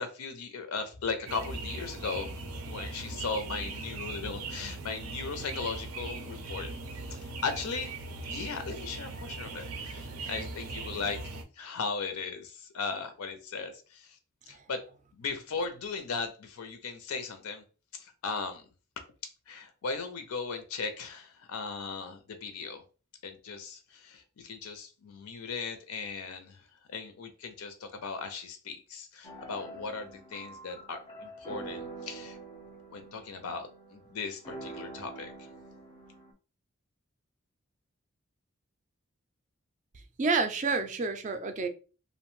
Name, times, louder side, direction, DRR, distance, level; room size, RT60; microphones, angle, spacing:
voice 1, 0.0-6.7 7.1-7.9 8.3-11.2 11.6-14.2 14.5-14.8 15.1-17.6 17.9-18.6 19.5-22.8 23.2-32.4 32.9-35.3, left 4 dB, 80° left, 0.5 m, -37 dB
sound 1, 1.3-11.4, right 3 dB, 90° right, 0.5 m, -40 dB
sound 2, 29.2-36.3, right 2 dB, 20° left, 0.5 m, -45 dB
voice 2, 40.2-41.7, right 4 dB, 35° right, 0.3 m, -29 dB
2.6 x 2.1 x 3.0 m
head